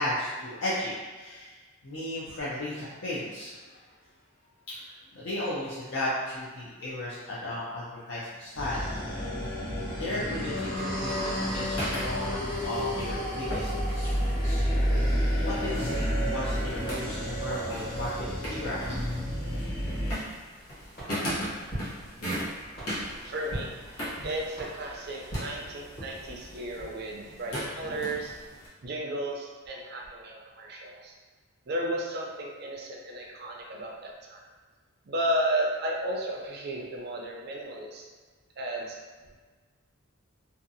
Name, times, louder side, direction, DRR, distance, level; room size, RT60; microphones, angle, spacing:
voice 1, 0.0-3.8 4.7-8.9 10.0-14.6 15.0-19.1, left 1 dB, 60° left, -9 dB, 0.5 m, -35 dB
sound 1, 8.5-20.1, equal, 25° left, 0.7 m, -30 dB
sound 2, 11.0-28.7, equal, 90° left, 1.0 m, -39 dB
sound 3, 20.9-26.3, right 1 dB, 45° left, 1.4 m, -42 dB
voice 2, 23.0-28.3 28.8-31.1 31.7-34.4 35.1-38.0 38.6-39.0, right 1 dB, 50° right, -1 dB, 0.4 m, -33 dB
2.7 x 2.3 x 2.6 m, 1.4 s
head